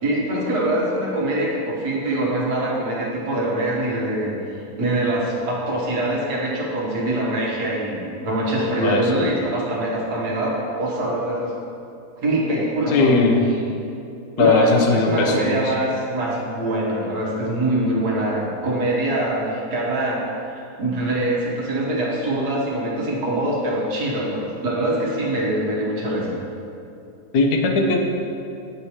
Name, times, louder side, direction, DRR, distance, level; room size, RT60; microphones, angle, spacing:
voice 1, 0.0-4.3 4.8-11.5 12.2-13.1 14.4-20.2 20.5-26.4, right 1 dB, 85° right, -3 dB, 1.6 m, -23 dB
voice 2, 8.8-9.2 12.9-13.4 14.4-15.7 27.3-28.0, left 3 dB, 80° left, 1 dB, 1.2 m, -18 dB
8.7 x 4.7 x 2.8 m, 2.7 s
omnidirectional pair, 1.7 m